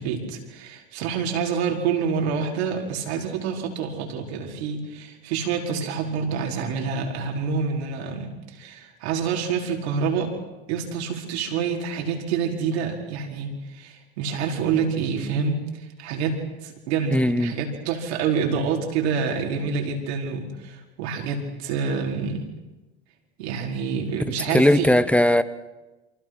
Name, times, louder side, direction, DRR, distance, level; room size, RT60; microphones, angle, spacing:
voice 1, 0.0-10.3 10.7-22.5 23.4-24.9, right 6 dB, 85° right, 1 dB, 4.9 m, -27 dB
voice 2, 17.1-17.6 24.5-25.4, left 1 dB, 5° left, 13 dB, 1.3 m, -18 dB
28.5 x 25.0 x 6.2 m, 1.1 s
supercardioid pair, 90°, 32 cm